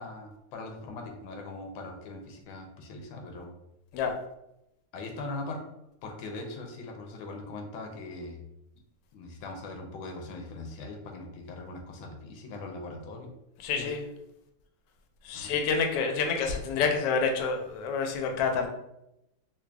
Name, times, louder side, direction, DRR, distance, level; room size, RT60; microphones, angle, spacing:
voice 1, 0.0-3.5 4.9-5.7 6.0-8.4 9.1-13.3 13.7-13.9 15.3-15.5, left 2 dB, 90° left, 3 dB, 1.4 m, -40 dB
voice 2, 13.6-14.0 15.2-18.7, left 5 dB, 75° left, 3 dB, 1.2 m, -28 dB
4.1 x 2.8 x 2.2 m, 0.85 s
omnidirectional pair, 2.2 m